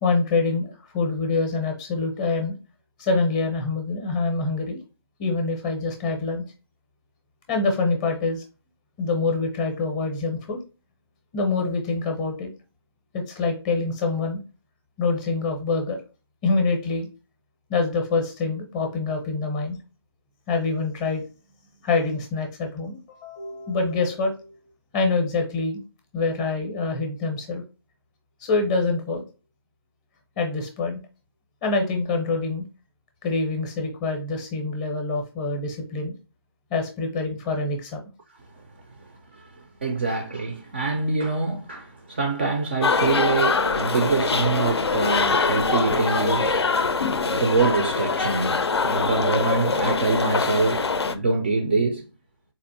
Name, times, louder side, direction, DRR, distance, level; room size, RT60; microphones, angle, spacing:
voice 1, 0.0-2.5 3.0-4.8 5.2-6.4 7.5-8.4 9.0-10.6 11.3-12.5 13.1-14.4 15.0-16.0 16.4-17.1 17.7-19.8 20.5-21.2 21.8-24.5 24.9-25.8 26.1-27.6 28.4-29.2 30.4-31.0 31.6-32.6 33.2-36.1 36.7-38.0, left 3 dB, 15° left, 0.6 m, -25 dB
voice 2, 39.8-46.6 46.9-52.1, right 3 dB, 25° right, 0.3 m, -25 dB
sound 1, 42.8-51.1, left 4 dB, 80° left, 0.5 m, -23 dB
4.2 x 2.5 x 2.5 m
figure-of-eight pair, 155°, 14 cm